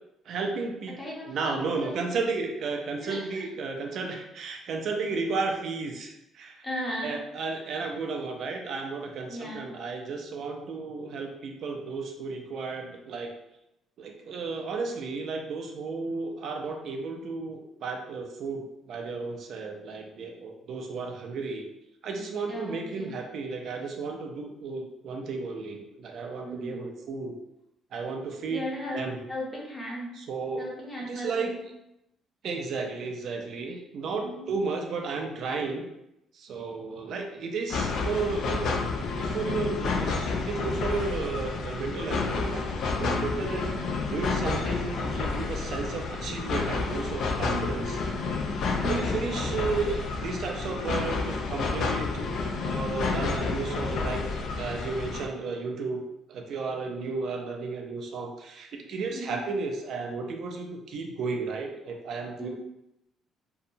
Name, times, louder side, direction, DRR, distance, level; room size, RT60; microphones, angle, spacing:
voice 1, 0.3-1.0 1.3-6.6 7.0-13.3 14.0-21.7 22.0-27.4 27.9-29.2 30.2-30.7 31.1-31.5 32.4-35.9 36.3-38.7 39.2-42.6 43.0-43.7 44.1-48.6 48.9-52.3 52.6-54.2 54.6-56.0 56.3-62.5, right 4 dB, 55° right, 2 dB, 0.4 m, -33 dB
voice 2, 1.0-2.2 2.6-2.7 3.0-3.4 6.6-7.2 9.3-9.7 22.5-23.1 26.4-26.8 28.5-30.1 30.6-31.5 34.2-34.5 42.9-43.4 47.5-47.9 48.8-49.2 59.1-59.4 62.4-62.5, equal, 20° left, -4 dB, 0.7 m, -36 dB
sound 1, 37.7-55.3, left 4 dB, 55° left, 0.3 m, -30 dB
2.6 x 2.1 x 2.6 m, 0.86 s
cardioid pair, 140°, 0 cm